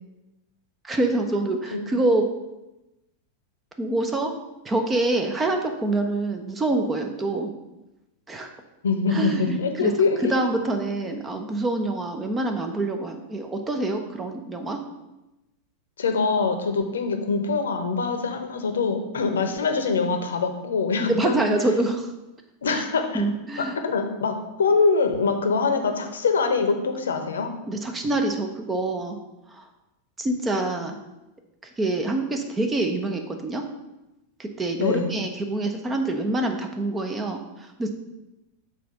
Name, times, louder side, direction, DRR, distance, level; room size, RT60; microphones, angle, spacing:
voice 1, 0.8-2.3 3.8-4.3 4.6-7.5 8.3-8.5 9.1-9.9 10.3-14.8 21.1-22.1 22.7-22.8 23.1-23.8 27.7-29.2 29.5-29.7 30.2-31.0 31.8-33.7 34.4-37.9, right 2 dB, 15° right, 4 dB, 0.8 m, -26 dB
voice 2, 8.8-10.4 16.0-21.4 22.6-23.3 23.6-27.5 34.8-35.2, left 4 dB, 65° left, 6 dB, 0.8 m, -24 dB
6.0 x 4.1 x 6.0 m, 0.97 s
figure-of-eight pair, 90°, 0 cm